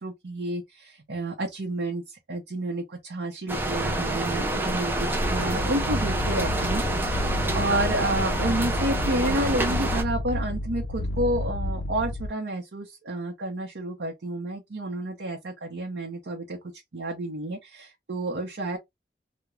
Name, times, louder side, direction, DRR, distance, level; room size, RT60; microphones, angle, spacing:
voice 1, 0.0-2.0 2.3-6.8 7.5-16.6 16.9-18.8, right 1 dB, 90° right, 0.7 m, -30 dB
sound 1, 3.5-10.0, right 1 dB, 10° right, 0.4 m, -27 dB
sound 2, 5.2-12.3, left 1 dB, 80° left, 0.3 m, -31 dB
2.4 x 2.1 x 2.9 m
head